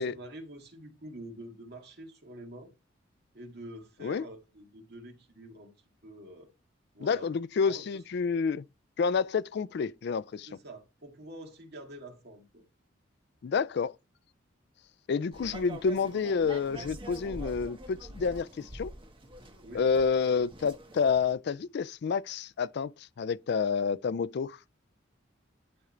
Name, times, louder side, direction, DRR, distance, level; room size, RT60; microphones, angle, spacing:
voice 1, 0.0-2.7 3.3-5.7 6.0-6.5 6.9-7.3 7.6-7.9 10.5-12.6 19.6-19.9, right 1 dB, 55° right, 2.1 m, -46 dB
voice 2, 7.0-8.6 9.0-10.5 13.4-13.9 15.1-18.9 19.7-24.6, left 5 dB, 55° left, 0.4 m, -29 dB
sound 1, 15.3-21.3, right 1 dB, 25° right, 1.1 m, -45 dB
11.0 x 3.7 x 4.4 m
head